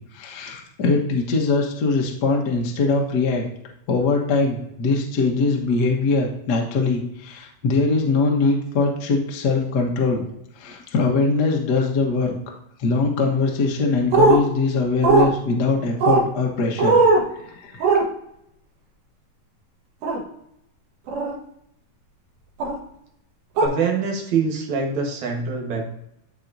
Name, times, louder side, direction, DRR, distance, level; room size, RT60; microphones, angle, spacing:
voice 1, 0.1-3.5 3.9-10.2 10.6-12.3 12.8-17.0 17.3-17.9, left 3 dB, 75° left, 0 dB, 0.9 m, -22 dB
sound 1, 14.1-14.4 15.0-15.3 16.0-16.2 16.8-17.2 17.8-18.0 20.0-20.2 21.1-21.3 22.6-22.8 23.6-23.7, right 3 dB, 85° right, 3.3 m, -17 dB
voice 2, 23.6-25.8, right 5 dB, 60° right, 1 dB, 2.5 m, -24 dB
13.0 x 4.5 x 2.7 m, 0.77 s
omnidirectional pair, 4.1 m